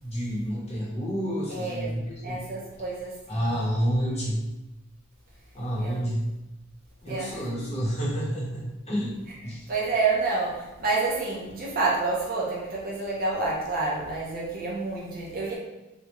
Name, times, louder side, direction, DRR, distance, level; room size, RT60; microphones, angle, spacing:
voice 1, 0.0-2.4 3.3-4.4 5.5-6.2 7.0-9.2 9.4-9.7, equal, 30° left, -7 dB, 1.0 m, -29 dB
voice 2, 1.5-1.9 2.2-3.5 5.8-6.0 7.1-7.4 9.7-15.6, right 3 dB, 45° right, -4 dB, 0.7 m, -28 dB
3.3 x 2.3 x 3.0 m, 1.0 s
head